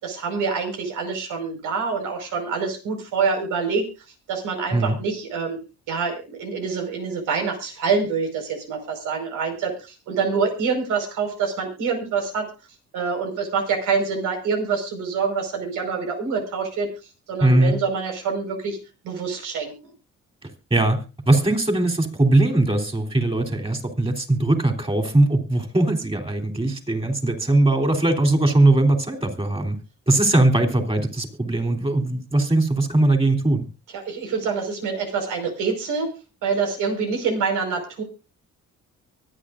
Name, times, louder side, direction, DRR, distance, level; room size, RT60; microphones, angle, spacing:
voice 1, 0.0-3.8 4.3-5.6 5.9-12.5 12.9-16.9 17.3-18.8 19.0-19.9 33.9-36.1 36.4-38.0, right 5 dB, 90° right, 3 dB, 5.2 m, -26 dB
voice 2, 17.4-17.7 20.7-29.8 30.1-33.6, right 2 dB, 20° right, 6 dB, 3.6 m, -20 dB
24.5 x 9.1 x 2.6 m, 0.31 s
cardioid pair, 90°, 30 cm